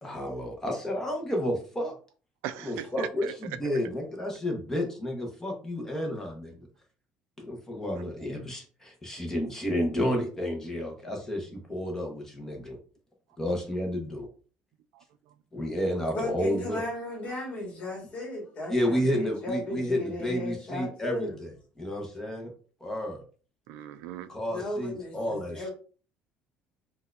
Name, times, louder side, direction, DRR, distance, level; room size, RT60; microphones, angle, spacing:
voice 1, 0.0-1.9 2.6-6.6 7.4-12.8 13.4-14.3 15.5-16.8 18.7-22.5 22.8-23.2 24.3-25.7, equal, 10° left, 0.7 m, -31 dB
voice 2, 2.4-3.4 7.9-8.0 14.9-15.3 23.7-24.3, right 11 dB, 85° right, 0.3 m, -39 dB
voice 3, 16.1-21.3 24.5-25.7, left 1 dB, 35° left, 1.4 m, -35 dB
4.1 x 2.2 x 2.4 m
cardioid pair, 150°, 4 cm